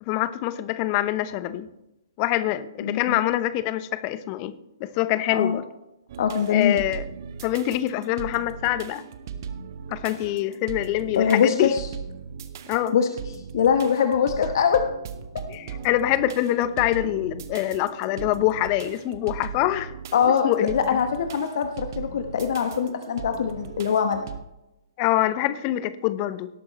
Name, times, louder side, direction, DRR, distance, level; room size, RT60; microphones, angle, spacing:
voice 1, 0.0-1.7 2.2-4.5 4.8-5.6 6.5-7.0 7.4-9.0 9.9-11.7 12.7-13.0 15.5-19.9 20.4-20.7 25.0-26.5, left 14 dB, 35° left, 14 dB, 0.8 m, -25 dB
voice 2, 2.8-3.2 5.3-5.6 6.2-6.8 11.1-11.9 12.9-13.1 13.5-14.8 20.1-24.2, left 7 dB, 60° left, 6 dB, 1.0 m, -22 dB
sound 1, 6.1-24.4, right 7 dB, 50° right, 1.1 m, -39 dB
18.0 x 8.3 x 3.1 m, 0.93 s
figure-of-eight pair, 120°, 2 cm